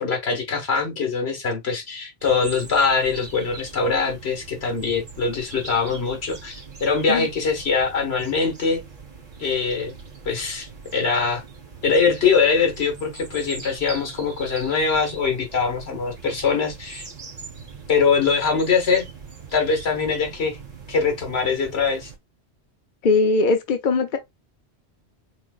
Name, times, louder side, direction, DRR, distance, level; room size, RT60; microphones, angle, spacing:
voice 1, 0.0-8.8 9.4-9.9 10.3-11.4 11.8-17.1 17.9-19.1 19.5-20.6 20.9-22.1, left 5 dB, 70° left, 1.6 m, -22 dB
sound 1, 2.2-22.2, right 5 dB, 50° right, 1.4 m, -41 dB
voice 2, 23.0-24.2, left 3 dB, 55° left, 0.7 m, -20 dB
4.5 x 3.6 x 2.3 m
omnidirectional pair, 1.1 m